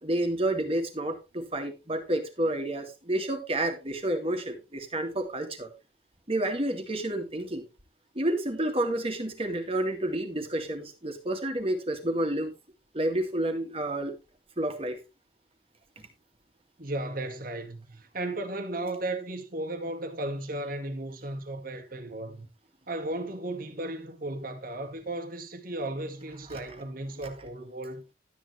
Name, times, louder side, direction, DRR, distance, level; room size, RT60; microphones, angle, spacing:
voice 1, 0.0-5.7 6.3-7.6 8.2-12.5 12.9-14.2 14.6-15.0 26.5-26.6, right 1 dB, 30° right, 2.2 m, -30 dB
voice 2, 16.8-22.5 22.9-28.0, right 2 dB, 50° right, 1.8 m, -35 dB
12.5 x 9.3 x 3.3 m
head